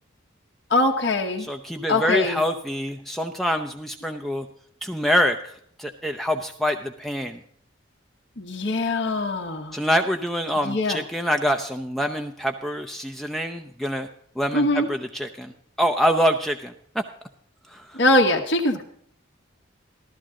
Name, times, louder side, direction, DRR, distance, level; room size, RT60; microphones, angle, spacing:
voice 1, 0.7-1.5 1.9-2.4 8.4-9.8 10.6-11.0 14.5-14.9 17.9-18.8, left 2 dB, 55° left, 0 dB, 1.3 m, -22 dB
voice 2, 1.4-4.5 4.8-7.4 9.7-14.1 14.4-15.5 15.8-17.0 17.7-18.0, equal, ahead, 4 dB, 0.6 m, -25 dB
14.0 x 13.5 x 3.7 m, 0.65 s
head